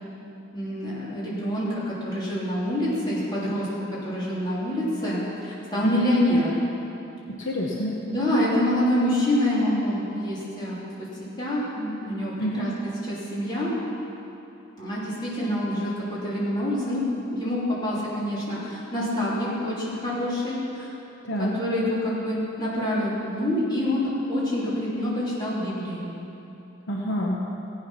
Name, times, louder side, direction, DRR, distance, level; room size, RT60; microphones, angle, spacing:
voice 1, 0.5-6.6 8.1-11.1 11.4-12.7 13.0-13.7 14.8-20.9 21.4-26.1, left 1 dB, 20° left, -8 dB, 3.4 m, -26 dB
voice 2, 7.3-8.0 12.4-12.7 21.2-21.6 26.9-27.4, equal, 65° left, -2 dB, 1.2 m, -27 dB
16.0 x 8.8 x 5.8 m, 2.9 s
head